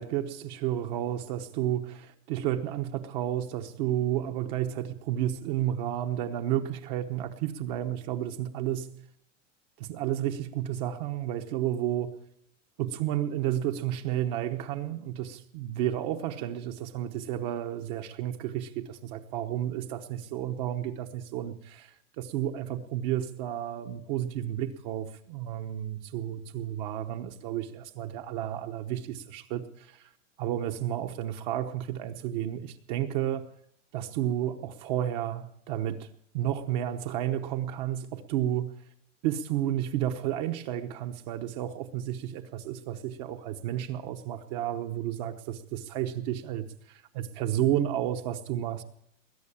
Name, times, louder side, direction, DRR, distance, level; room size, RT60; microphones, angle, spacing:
voice 1, 0.0-9.1 9.8-12.2 12.8-30.1 30.4-33.5 33.9-36.1 36.3-38.7 39.2-48.8, right 11 dB, 35° right, 5 dB, 1.0 m, -32 dB
21.0 x 9.5 x 7.1 m, 0.70 s
supercardioid pair, 175°, 38 cm